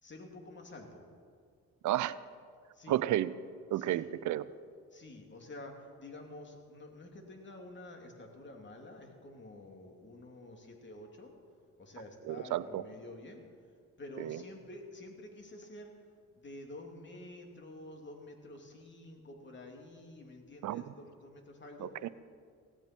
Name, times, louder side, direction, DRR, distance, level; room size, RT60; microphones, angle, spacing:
voice 1, 0.0-1.1 2.7-3.1 3.7-4.1 4.9-11.3 11.8-13.4 14.0-15.9 16.3-22.1, left 2 dB, 40° left, 2 dB, 2.7 m, -49 dB
voice 2, 1.8-2.2 2.9-3.3 3.7-4.5 12.3-12.8 14.2-14.4 20.6-20.8 21.8-22.1, right 13 dB, 75° right, 16 dB, 0.6 m, -32 dB
16.5 x 15.5 x 4.5 m, 2.1 s
cardioid pair, 90°, 30 cm